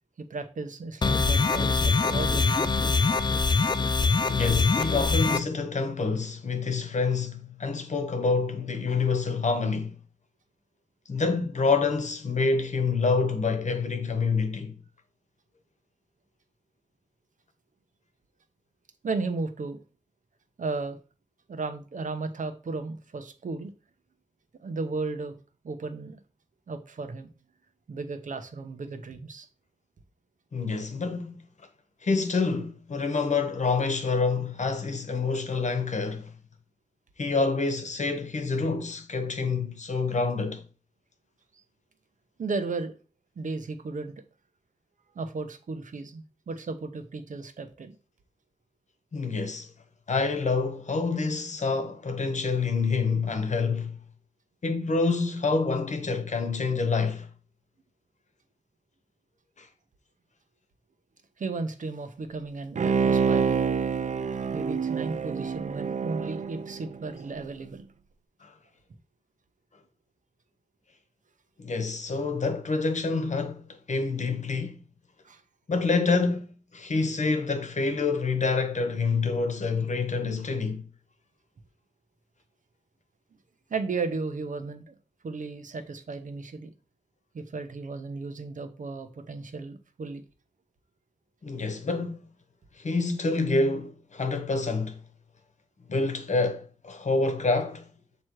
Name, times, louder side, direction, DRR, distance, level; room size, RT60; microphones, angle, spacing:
voice 1, 0.3-3.1 19.0-19.8 20.6-21.0 21.5-23.7 24.6-25.4 25.6-26.2 26.7-27.3 27.9-29.5 42.4-42.9 43.4-44.1 45.1-48.0 61.4-63.6 64.5-67.8 75.2-75.4 83.7-84.9 85.2-86.7 87.3-90.2, right 3 dB, 85° right, 0.8 m, -34 dB
sound 1, 1.0-5.4, left 4 dB, 35° left, 0.4 m, -23 dB
voice 2, 4.2-10.0 11.1-14.8 30.5-31.4 32.0-36.3 37.2-40.6 49.1-49.7 50.1-54.0 54.6-57.3 59.6-59.7 68.4-68.5 71.6-74.8 75.7-80.8 91.4-92.2 92.8-95.0 95.8-97.9, left 4 dB, 65° left, 1.1 m, -27 dB
Bowed string instrument, 62.8-67.4 67.8-67.9, right 6 dB, 70° right, 0.4 m, -27 dB
7.5 x 3.1 x 4.6 m
wide cardioid pair, 90°, 13 cm